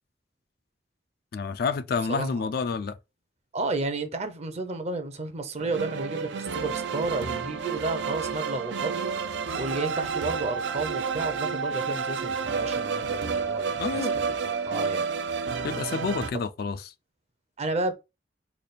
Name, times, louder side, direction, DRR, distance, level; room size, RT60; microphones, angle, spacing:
voice 1, 1.3-3.0 13.8-14.2 15.6-16.9, left 5 dB, 60° left, 0.3 m, -29 dB
voice 2, 2.1-2.5 3.5-9.3 9.6-14.1 14.4-15.0 17.6-17.9, right 3 dB, 40° right, 0.6 m, -32 dB
sound 1, 5.6-16.3, right 5 dB, 80° right, 0.5 m, -30 dB
3.4 x 2.3 x 4.0 m
head